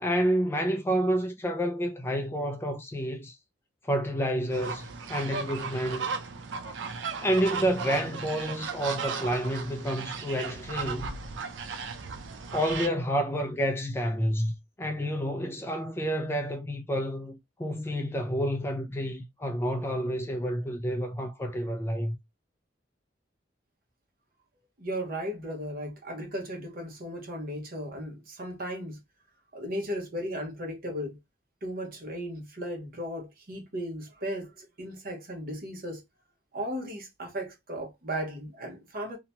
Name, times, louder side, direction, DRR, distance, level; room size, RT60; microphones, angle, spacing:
voice 1, 0.0-3.4 3.9-6.2 7.2-11.1 12.5-22.2, equal, 15° left, 0.3 m, -29 dB
sound 1, 4.5-12.9, right 5 dB, 70° right, 0.5 m, -36 dB
voice 2, 24.8-29.0 29.5-31.2 31.6-36.0 36.5-39.2, equal, 50° right, 0.9 m, -36 dB
2.8 x 2.2 x 2.8 m
head